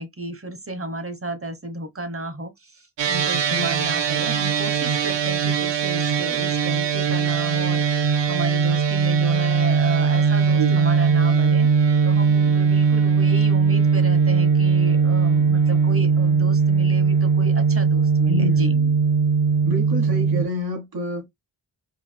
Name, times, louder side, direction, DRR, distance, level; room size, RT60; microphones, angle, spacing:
voice 1, 0.0-11.7 12.0-18.7, right 2 dB, 30° right, 1.2 m, -33 dB
sound 1, 3.0-20.4, right 5 dB, 75° right, 0.6 m, -19 dB
voice 2, 3.5-3.8 10.5-10.8 18.3-18.9 19.6-21.3, equal, 60° right, 1.7 m, -28 dB
4.5 x 3.5 x 2.2 m
cardioid pair, 45°, 43 cm